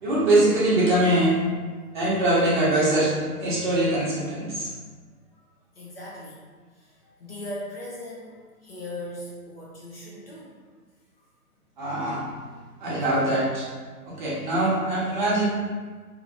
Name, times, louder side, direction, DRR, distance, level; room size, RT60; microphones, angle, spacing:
voice 1, 0.0-1.4 1.9-3.1 3.4-4.7 11.8-12.3 12.8-13.7 14.0-15.5, right 1 dB, 30° right, -8 dB, 0.9 m, -22 dB
voice 2, 1.7-2.0 5.3-5.4 5.7-6.4 6.7-10.6, left 1 dB, 40° left, -5 dB, 0.7 m, -39 dB
2.9 x 2.8 x 2.5 m, 1.5 s
figure-of-eight pair, 130°, 47 cm